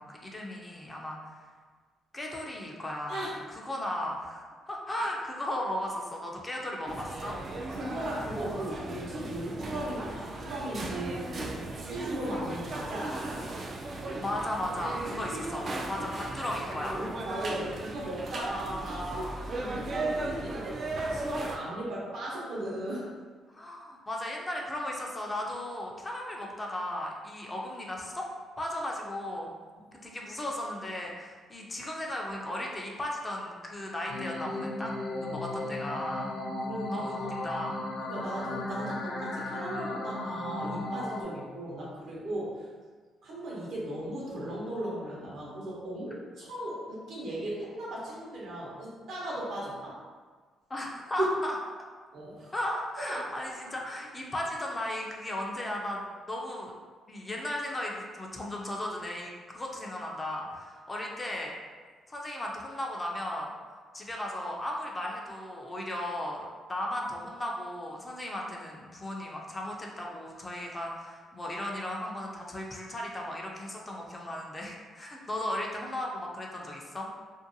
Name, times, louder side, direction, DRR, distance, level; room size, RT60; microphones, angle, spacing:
voice 1, 0.0-1.3 2.1-3.3 3.5-7.4 14.2-17.0 23.5-28.3 28.6-29.5 29.9-34.9 35.2-36.4 36.9-37.8 50.7-51.5 52.5-56.7 57.1-61.5 62.1-63.5 63.9-77.1, left 1 dB, 20° left, -1 dB, 0.4 m, -36 dB
sound 1, 6.9-21.6, right 2 dB, 50° right, 0.3 m, -36 dB
voice 2, 7.7-13.4 15.2-15.3 15.9-16.0 16.9-23.1 36.6-37.3 38.0-42.7 43.2-50.0 51.2-51.3 52.1-52.5 53.0-53.2 53.6-53.8, right 1 dB, 70° right, -5 dB, 0.8 m, -37 dB
sound 2, 34.1-41.2, left 2 dB, 80° left, 0.4 m, -35 dB
2.6 x 2.1 x 2.6 m, 1.5 s
cardioid pair, 90°, 0 cm